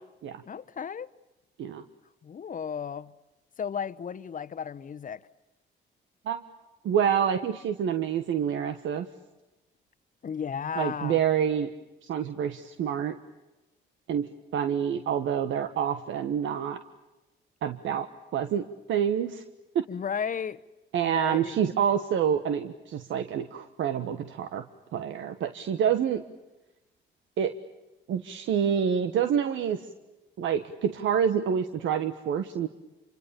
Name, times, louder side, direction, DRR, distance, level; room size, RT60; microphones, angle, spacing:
voice 1, 0.5-1.1 2.2-3.1 3.6-5.2 10.2-11.2 19.9-20.6 21.0-21.6, left 7 dB, 40° left, 1.1 m, -34 dB
voice 2, 6.8-9.1 10.8-11.7 12.1-13.2 14.1-16.8 17.6-19.4 19.7-19.8 20.9-24.7 24.9-26.2 27.4-27.5 28.1-29.9 30.4-32.7, right 8 dB, 75° right, 1.4 m, -27 dB
28.5 x 25.0 x 7.0 m
cardioid pair, 90°, 20 cm